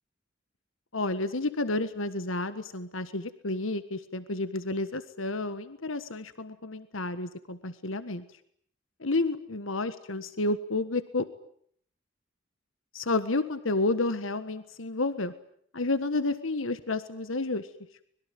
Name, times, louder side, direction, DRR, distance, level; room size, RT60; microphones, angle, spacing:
voice 1, 0.9-8.2 9.0-11.3 12.9-15.3 15.7-17.7, left 2 dB, 85° left, 12 dB, 1.6 m, -30 dB
25.0 x 22.0 x 9.4 m, 0.65 s
head